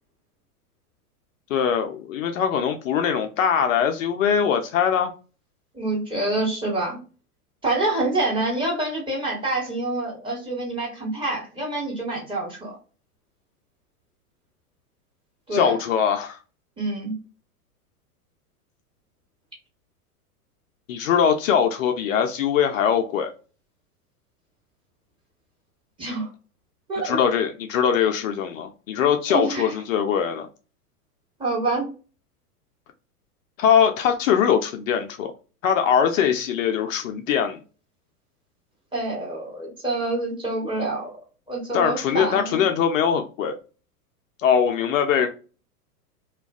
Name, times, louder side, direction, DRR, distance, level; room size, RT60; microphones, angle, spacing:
voice 1, 1.5-5.1 15.5-16.4 20.9-23.3 27.0-30.5 33.6-35.3 35.6-37.6 41.7-43.6 44.4-45.3, left 8 dB, 60° left, 0.5 m, -22 dB
voice 2, 5.7-7.0 7.6-12.8 15.5-15.8 16.8-17.1 26.0-26.3 26.9-27.2 29.3-29.7 31.4-31.9 38.9-41.1 41.5-42.6, right 2 dB, 10° right, 1.1 m, -26 dB
2.3 x 2.2 x 2.3 m
hypercardioid pair, 105°, 46 cm